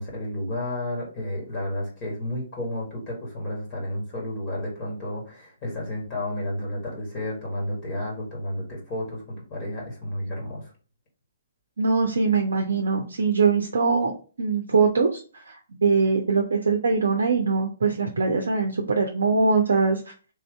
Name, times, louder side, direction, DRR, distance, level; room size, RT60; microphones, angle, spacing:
voice 1, 0.0-10.7, left 1 dB, 35° left, -3 dB, 1.7 m, -32 dB
voice 2, 11.8-14.1 14.4-15.2 15.5-20.0, right 4 dB, 65° right, 3 dB, 0.6 m, -22 dB
3.4 x 2.7 x 3.3 m, 0.37 s
figure-of-eight pair, 125°, 0 cm